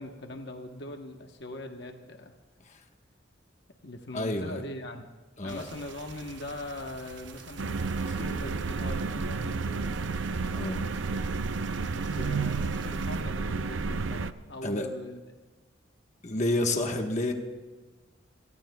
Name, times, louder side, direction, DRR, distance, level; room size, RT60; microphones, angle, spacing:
voice 1, 0.0-2.4 3.8-5.1 5.4-10.0 11.9-15.2, left 1 dB, 60° left, 4 dB, 1.1 m, -41 dB
voice 2, 4.1-4.6 5.4-5.6 10.4-10.9 14.6-14.9 16.2-17.3, left 2 dB, 40° left, 3 dB, 1.3 m, -30 dB
sound 1, 5.5-13.2, right 4 dB, 65° right, 0.9 m, -47 dB
sound 2, 7.6-14.3, right 4 dB, 85° right, 0.6 m, -31 dB
28.0 x 19.0 x 2.3 m, 1.3 s
head